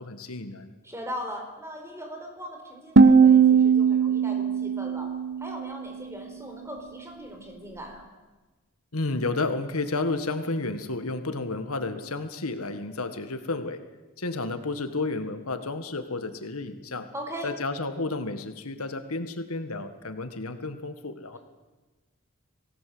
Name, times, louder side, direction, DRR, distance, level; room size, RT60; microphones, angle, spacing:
voice 1, 0.0-0.7 8.9-13.8 14.2-17.1 17.4-21.4, left 3 dB, 85° left, 8 dB, 1.7 m, -31 dB
voice 2, 0.8-5.1 5.4-8.1 17.1-17.5 21.3-21.4, equal, 10° right, 3 dB, 4.7 m, -39 dB
sound 1, 3.0-6.0, right 5 dB, 55° right, 1.2 m, -19 dB
26.0 x 18.0 x 7.9 m, 1.2 s
head